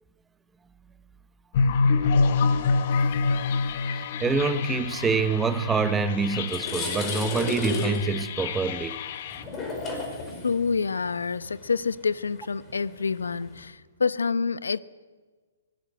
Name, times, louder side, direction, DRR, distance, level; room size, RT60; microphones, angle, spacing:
sound 1, 1.5-9.4, left 4 dB, 45° left, 1.7 m, -26 dB
voice 1, 4.2-9.0, right 5 dB, 10° right, 1.0 m, -26 dB
sound 2, 5.9-6.0 6.3-13.7, left 2 dB, 20° left, 5.4 m, -34 dB
voice 2, 10.4-14.8, left 5 dB, 85° left, 1.0 m, -27 dB
24.0 x 18.5 x 7.8 m
hypercardioid pair, 140°, 0 cm